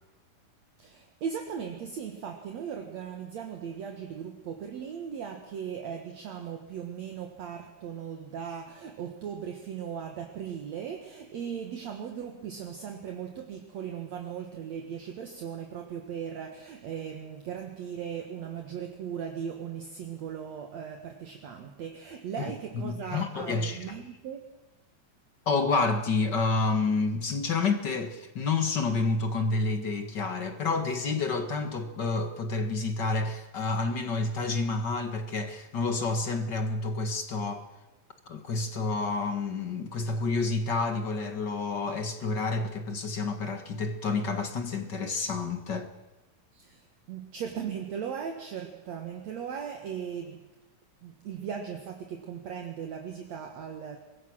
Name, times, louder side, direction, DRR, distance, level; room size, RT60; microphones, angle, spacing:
voice 1, 0.8-24.4 46.5-50.5 51.0-54.0, right 7 dB, 60° right, 2.6 m, -38 dB
voice 2, 22.4-23.9 25.4-37.6 38.3-45.9, left 3 dB, 45° left, 1.6 m, -29 dB
24.5 x 21.5 x 6.3 m
omnidirectional pair, 3.9 m